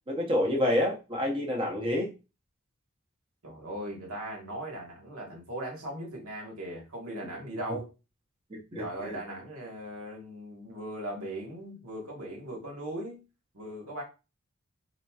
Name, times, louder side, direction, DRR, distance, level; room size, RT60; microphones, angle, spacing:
voice 1, 0.1-2.1 8.5-9.2, left 1 dB, 25° right, 0.7 m, -28 dB
voice 2, 3.4-7.9 8.8-13.2 13.5-14.0, right 1 dB, 85° right, 1.4 m, -39 dB
4.3 x 2.7 x 2.3 m
head